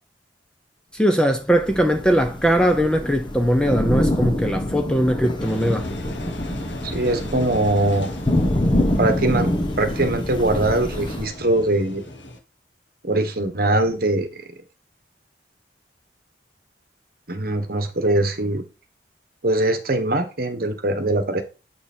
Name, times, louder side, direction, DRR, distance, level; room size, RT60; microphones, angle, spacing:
voice 1, 0.9-5.9, equal, 5° left, 0.7 m, -20 dB
Thunder / Rain, 1.5-11.3, left 1 dB, 25° left, 1.1 m, -25 dB
Engine, 5.4-12.4, left 1 dB, 75° left, 1.8 m, -37 dB
voice 2, 6.8-8.1 9.0-12.0 13.0-14.5 17.3-18.7 19.4-21.4, right 2 dB, 50° right, 1.3 m, -22 dB
7.9 x 6.0 x 4.4 m
head